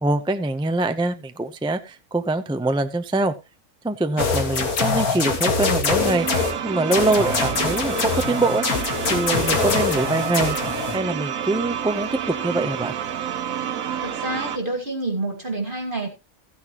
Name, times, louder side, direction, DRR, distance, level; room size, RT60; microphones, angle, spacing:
voice 1, 0.0-3.3 3.8-6.3 6.6-8.6 9.1-10.6 10.9-12.9, right 2 dB, 10° right, 8 dB, 0.3 m, -24 dB
sound 1, 4.2-6.5 6.9-11.0, left 4 dB, 85° left, 2.3 m, -24 dB
sound 2, 6.0-14.6, right 9 dB, 70° right, 1.3 m, -29 dB
voice 2, 14.0-16.1, right 2 dB, 35° right, 3 dB, 1.9 m, -28 dB
14.5 x 9.8 x 3.0 m, 0.25 s
omnidirectional pair, 1.5 m